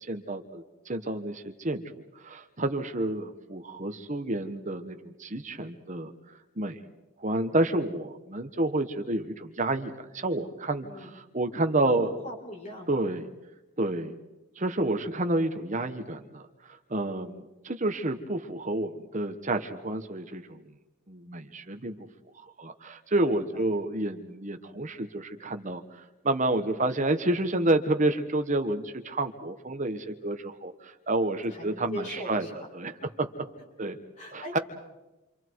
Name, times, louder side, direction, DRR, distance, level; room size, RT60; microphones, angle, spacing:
voice 1, 0.1-1.8 2.2-6.1 6.6-6.8 7.2-12.1 12.9-13.3 13.8-14.2 14.5-16.5 16.9-20.6 21.1-22.1 22.3-32.4 32.7-32.9 33.8-34.0 34.3-34.6, right 2 dB, 35° right, 7 dB, 1.3 m, -29 dB
voice 2, 10.8-11.2 11.8-13.1 23.2-23.8 31.5-32.5 33.0-33.1 34.2-34.6, equal, 35° left, 0 dB, 6.5 m, -40 dB
29.0 x 26.5 x 4.7 m, 1.0 s
head